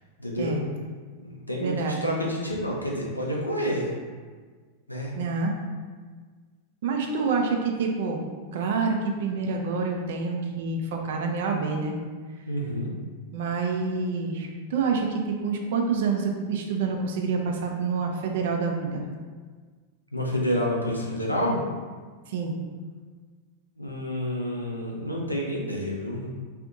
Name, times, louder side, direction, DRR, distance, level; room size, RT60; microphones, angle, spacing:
voice 1, 0.2-0.6 1.2-3.9 4.9-5.1 12.5-12.9 20.1-21.6 23.8-26.3, equal, 85° left, -3 dB, 0.6 m, -29 dB
voice 2, 1.6-2.0 5.2-5.5 6.8-8.2 8.5-12.0 13.3-19.0 22.3-22.5, right 4 dB, 55° right, 2 dB, 0.5 m, -27 dB
2.5 x 2.5 x 3.7 m, 1.5 s
figure-of-eight pair, 90°, 0 cm